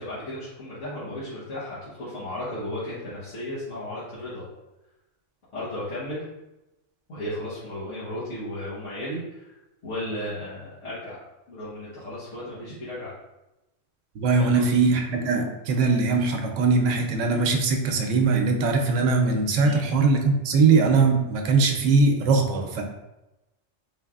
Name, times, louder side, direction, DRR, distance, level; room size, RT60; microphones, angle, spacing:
voice 1, 0.0-4.4 5.5-6.2 7.1-9.6 9.8-11.2 11.5-13.1 14.3-14.7 19.6-19.8, left 1 dB, 75° left, -11 dB, 1.4 m, -34 dB
voice 2, 14.2-22.8, right 4 dB, 80° right, 3 dB, 0.9 m, -21 dB
4.0 x 3.2 x 2.3 m, 0.97 s
omnidirectional pair, 1.3 m